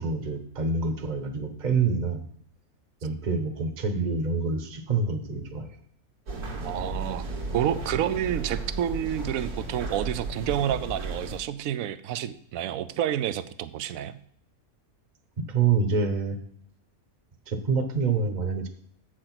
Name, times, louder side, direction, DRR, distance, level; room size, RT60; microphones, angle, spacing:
voice 1, 0.0-2.2 3.0-5.7 15.4-16.4 17.5-18.7, right 4 dB, 35° right, 7 dB, 1.0 m, -26 dB
sound 1, 6.3-11.4, right 3 dB, 90° right, 2.1 m, -34 dB
voice 2, 6.6-14.2, right 10 dB, 75° right, 14 dB, 1.0 m, -29 dB
7.7 x 6.5 x 5.9 m, 0.65 s
omnidirectional pair, 1.6 m